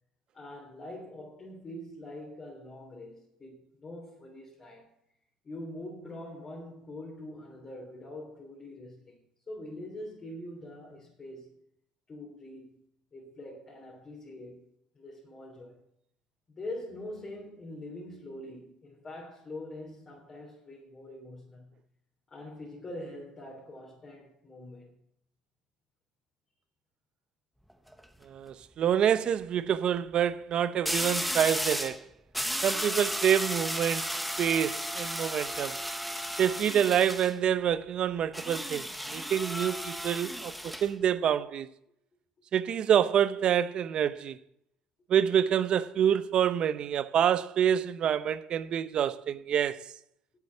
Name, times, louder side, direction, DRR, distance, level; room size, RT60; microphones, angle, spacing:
voice 1, 0.3-4.9 5.4-9.2 9.5-11.6 12.1-14.7 14.9-15.8 16.5-21.7 22.3-24.9, left 1 dB, 30° left, 3.4 m, -44 dB
sound 1, 27.7-28.0 30.8-32.0 32.3-37.3 38.3-40.9, equal, ahead, 0.9 m, -34 dB
voice 2, 28.3-32.0 32.6-35.8 36.4-41.7 42.5-44.4 45.1-49.8, right 9 dB, 50° right, 0.7 m, -27 dB
8.4 x 8.2 x 8.2 m
cardioid pair, 105°, 2 cm